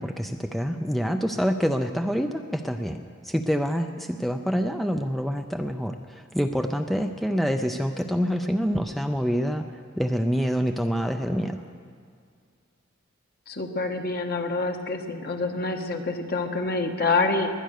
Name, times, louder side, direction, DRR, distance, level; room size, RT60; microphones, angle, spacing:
voice 1, 0.0-9.6 10.0-11.6, equal, ahead, 6 dB, 0.5 m, -26 dB
voice 2, 13.5-17.5, left 3 dB, 50° left, 4 dB, 1.4 m, -27 dB
21.0 x 10.0 x 6.5 m, 2.1 s
head